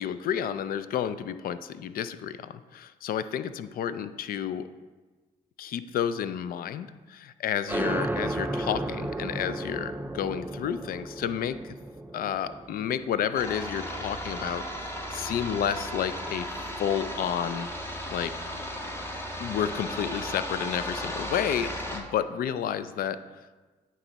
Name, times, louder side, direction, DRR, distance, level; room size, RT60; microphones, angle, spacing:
voice 1, 0.0-4.7 5.6-11.7 12.1-16.5 16.8-17.7 18.1-18.3 19.4-23.2, left 9 dB, 60° left, 13 dB, 0.4 m, -31 dB
sound 1, 7.7-14.9, right 2 dB, 10° right, 0.3 m, -34 dB
sound 2, 13.3-22.0, equal, 15° left, 1.0 m, -35 dB
8.9 x 3.1 x 4.0 m, 1.3 s
supercardioid pair, 60°, 17 cm